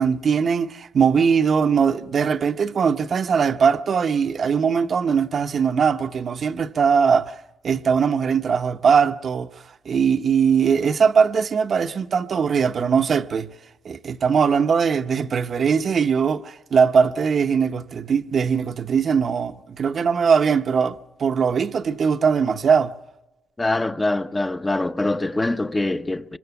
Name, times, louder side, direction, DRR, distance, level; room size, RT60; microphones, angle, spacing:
voice 1, 0.0-7.4 7.6-9.5 9.9-13.5 13.8-23.0, right 6 dB, 50° right, 0.8 m, -20 dB
voice 2, 23.6-26.4, left 2 dB, 15° left, 0.7 m, -24 dB
24.5 x 24.5 x 5.9 m
cardioid pair, 90°, 0 cm